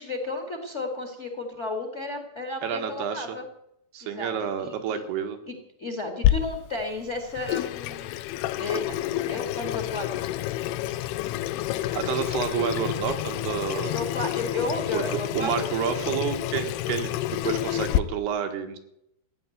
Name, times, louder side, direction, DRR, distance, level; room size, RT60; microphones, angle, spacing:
voice 1, 0.0-3.5 4.0-4.3 4.6-5.0 5.5-8.2 8.6-8.9 9.3-10.3 13.7-15.9, left 2 dB, 25° left, 6 dB, 1.7 m, -33 dB
voice 2, 2.6-3.3 3.9-5.4 11.9-14.0 14.9-18.8, right 8 dB, 80° right, 6 dB, 3.7 m, -29 dB
Water tap faucet / Sink (filling or washing), 6.2-18.0, left 13 dB, 80° left, 2.7 m, -29 dB
16.0 x 10.0 x 8.0 m, 0.78 s
omnidirectional pair, 4.7 m